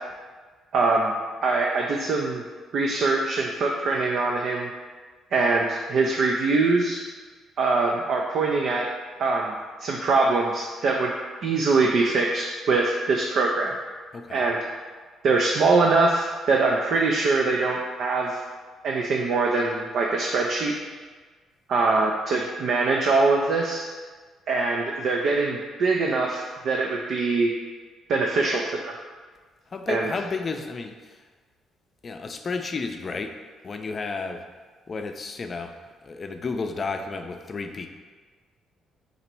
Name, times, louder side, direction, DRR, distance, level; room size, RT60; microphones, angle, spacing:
voice 1, 0.7-1.1 1.4-2.4 2.7-4.7 5.3-7.0 7.6-8.9 9.2-9.5 9.8-11.1 11.4-13.7 14.3-14.6 15.2-18.4 18.8-20.8 21.7-23.8 24.5-27.5 28.1-28.9 29.9-30.1, right 3 dB, 60° right, 0 dB, 0.4 m, -23 dB
voice 2, 14.1-14.4 29.7-31.2 32.0-33.3 33.6-34.4 34.9-35.7 36.0-37.9, left 4 dB, 40° left, 6 dB, 0.4 m, -32 dB
3.9 x 2.9 x 4.5 m, 1.5 s
hypercardioid pair, 45°, 0 cm